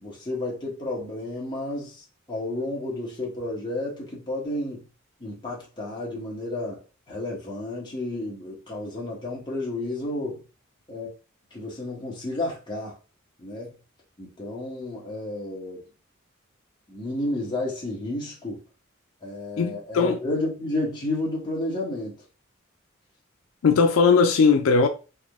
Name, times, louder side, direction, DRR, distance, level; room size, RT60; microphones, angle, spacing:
voice 1, 0.0-4.9 5.2-6.8 7.1-10.4 10.9-11.1 11.5-13.0 13.4-13.7 14.2-15.8 16.9-18.6 19.2-22.2, left 2 dB, 20° left, 1.2 m, -31 dB
voice 2, 19.6-20.2 23.6-24.9, left 5 dB, 80° left, 0.4 m, -19 dB
3.6 x 2.1 x 3.5 m
head